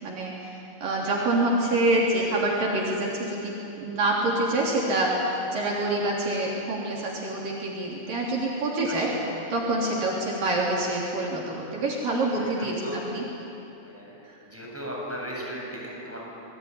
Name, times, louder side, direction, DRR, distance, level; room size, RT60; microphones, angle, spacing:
voice 1, 0.0-9.1 9.5-13.2 14.2-14.4, right 2 dB, 60° right, -4 dB, 4.9 m, -26 dB
voice 2, 8.4-9.2 12.3-13.0 13.8-14.1 14.5-16.2, equal, 5° right, -4 dB, 7.5 m, -37 dB
27.0 x 22.5 x 9.8 m, 2.9 s
omnidirectional pair, 4.6 m